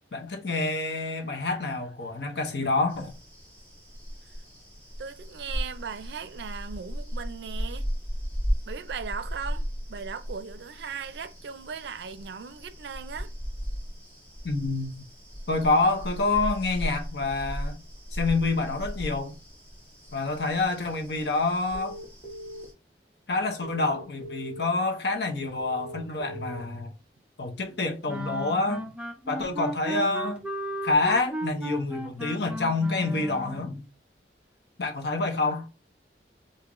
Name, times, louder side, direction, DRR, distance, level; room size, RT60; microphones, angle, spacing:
voice 1, 0.1-3.1 14.4-15.0 15.5-17.8 18.1-19.3 20.1-22.0 23.3-26.9 27.4-28.9 29.3-30.4 30.8-33.8 34.8-35.7, left 3 dB, 70° left, 0.8 m, -27 dB
sound 1, 2.9-22.7, equal, 10° left, 1.8 m, -36 dB
voice 2, 5.0-7.9 8.7-13.3, right 6 dB, 75° right, 0.4 m, -38 dB
sound 2, 21.7-22.6 23.6-24.6 25.6-26.6, equal, 35° left, 1.6 m, -40 dB
sound 3, 28.1-33.7, right 1 dB, 5° right, 0.4 m, -35 dB
3.7 x 2.7 x 3.0 m
head